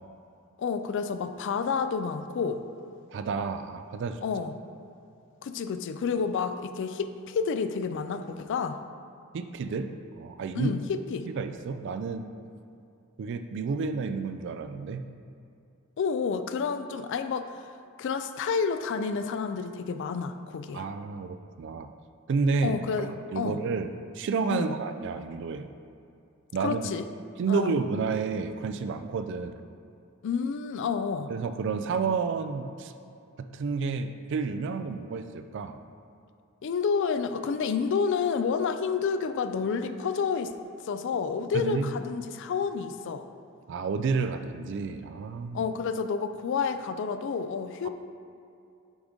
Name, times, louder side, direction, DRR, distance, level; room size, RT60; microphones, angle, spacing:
voice 1, 0.6-2.6 4.2-4.5 5.4-8.8 10.5-11.3 16.0-17.5 18.0-20.8 22.6-23.6 24.5-24.7 26.6-27.1 27.5-27.8 30.2-31.3 36.6-40.5 40.8-43.2 45.5-47.9, left 5 dB, 60° left, 10 dB, 0.3 m, -29 dB
voice 2, 3.1-4.2 9.3-9.9 10.2-10.7 11.3-12.3 13.2-15.0 20.7-21.9 22.3-22.8 23.1-25.7 26.5-26.9 27.4-29.6 31.3-32.9 33.4-35.8 41.5-41.9 43.7-45.6, right 5 dB, 55° right, 9 dB, 0.3 m, -30 dB
6.1 x 5.0 x 3.6 m, 2.6 s
head